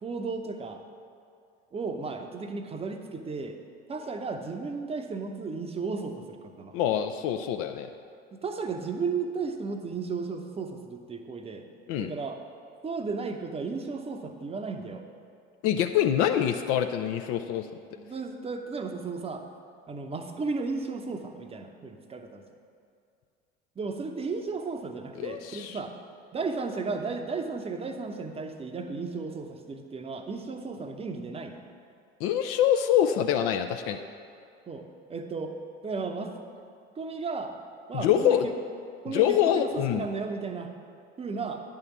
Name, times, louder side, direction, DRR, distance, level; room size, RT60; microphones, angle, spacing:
voice 1, 0.0-0.8 1.7-3.6 3.9-6.7 8.3-11.7 12.0-12.4 12.8-15.0 18.0-19.4 19.9-22.4 23.8-25.9 26.3-31.6 34.7-35.5 35.8-36.3 37.0-37.5 37.9-38.5 39.0-40.7 41.2-41.6, right 4 dB, 20° right, 5 dB, 0.8 m, -34 dB
voice 2, 6.7-7.9 11.9-12.1 15.6-17.7 25.2-25.8 32.2-34.0 37.9-38.5 39.1-40.0, left 10 dB, 50° left, 7 dB, 0.5 m, -25 dB
9.8 x 3.8 x 7.1 m, 2.3 s
figure-of-eight pair, 70°, 31 cm